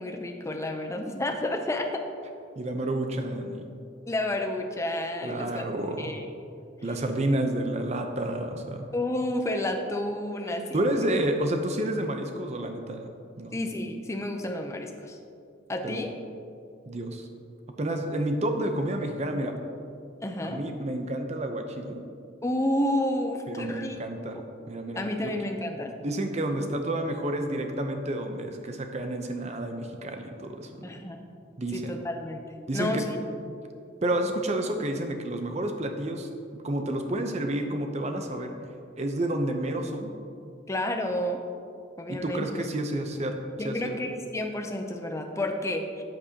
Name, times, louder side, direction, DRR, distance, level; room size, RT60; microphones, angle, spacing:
voice 1, 0.0-1.9 4.1-5.7 6.0-6.2 8.9-11.1 13.5-15.2 15.7-16.1 20.2-20.6 22.4-24.0 24.3-24.4 25.0-25.9 30.8-31.2 31.7-32.4 32.7-33.2 40.7-41.4 42.0-42.5 43.6-46.0, left 1 dB, 15° left, 4 dB, 0.5 m, -30 dB
voice 2, 2.6-3.7 5.2-6.1 6.8-8.9 10.7-13.1 13.4-13.6 15.8-16.0 16.9-17.3 17.8-19.5 20.4-22.0 23.5-24.4 24.7-25.3 26.0-30.9 31.6-31.9 32.7-33.1 34.0-38.5 39.0-40.1 42.1-43.4 43.6-44.0, right 1 dB, 35° right, 5 dB, 0.6 m, -30 dB
8.7 x 8.0 x 2.8 m, 2.5 s
head